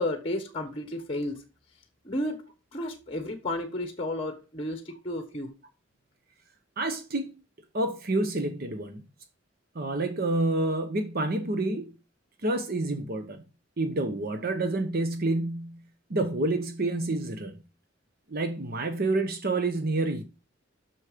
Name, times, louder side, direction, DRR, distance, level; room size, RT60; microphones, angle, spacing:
voice 1, 0.0-1.4 2.0-2.4 2.7-5.5, left 1 dB, 30° left, 1.1 m, -32 dB
voice 2, 6.8-7.3 7.7-9.0 9.7-11.9 12.4-13.4 13.8-15.8 16.1-17.5 18.3-20.2, right 2 dB, 50° right, 1.0 m, -28 dB
8.2 x 6.3 x 5.0 m
head